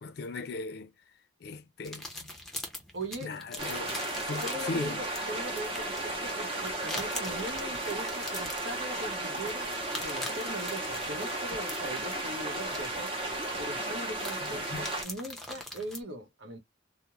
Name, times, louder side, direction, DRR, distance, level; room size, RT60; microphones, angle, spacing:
voice 1, 0.0-0.9 1.4-2.3 3.2-4.0 4.3-5.1 14.4-14.9, left 3 dB, 55° left, 0.4 m, -38 dB
sound 1, 1.8-16.0, left 1 dB, ahead, 0.5 m, -44 dB
voice 2, 2.9-3.4 4.4-13.1 13.6-16.6, right 1 dB, 80° right, 0.8 m, -40 dB
sound 2, 3.6-15.0, right 2 dB, 30° right, 0.8 m, -34 dB
2.3 x 2.0 x 2.9 m
head